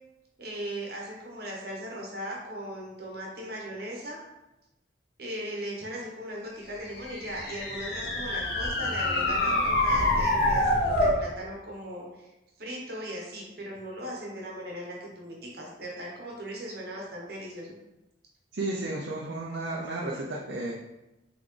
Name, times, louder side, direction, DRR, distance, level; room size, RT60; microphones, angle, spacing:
voice 1, 0.4-4.2 5.2-12.3 12.6-17.8, equal, 55° right, -2 dB, 1.1 m, -38 dB
sound 1, 6.8-11.2, left 1 dB, 65° left, 0.8 m, -26 dB
voice 2, 18.5-20.8, right 2 dB, 85° right, -3 dB, 0.6 m, -33 dB
4.0 x 3.5 x 3.2 m, 0.96 s
head